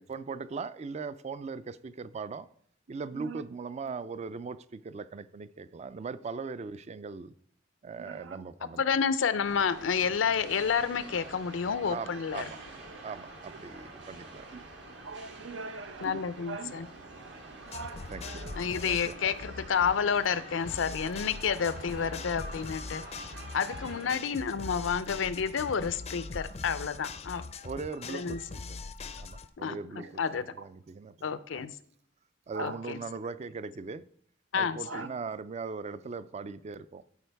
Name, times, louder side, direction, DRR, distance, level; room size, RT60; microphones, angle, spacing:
voice 1, 0.0-2.5 2.9-7.3 7.8-8.8 11.9-12.6 13.0-14.5 17.4-17.5 18.1-18.2 18.8-19.3 27.6-28.8 29.2-30.2 30.5-31.7 32.5-34.0 34.5-37.0, right 4 dB, 35° right, 0.3 m, -39 dB
voice 2, 3.1-3.4 7.9-8.4 13.5-13.6 14.5-14.6 15.0-16.7 17.6-18.9 23.9-24.2 30.0-30.1 32.5-32.9 34.8-35.1, right 4 dB, 80° right, 0.7 m, -42 dB
voice 3, 8.8-12.4 16.0-16.9 18.6-23.0 23.5-27.4 28.1-28.4 29.6-29.8 30.2-30.4 31.2-31.7 32.6-33.0 34.5-35.0, left 6 dB, 90° left, 0.5 m, -30 dB
sound 1, 9.4-24.2, right 2 dB, 65° right, 1.7 m, -47 dB
sound 2, 17.7-29.5, left 4 dB, 35° left, 0.4 m, -42 dB
12.0 x 4.6 x 3.4 m
head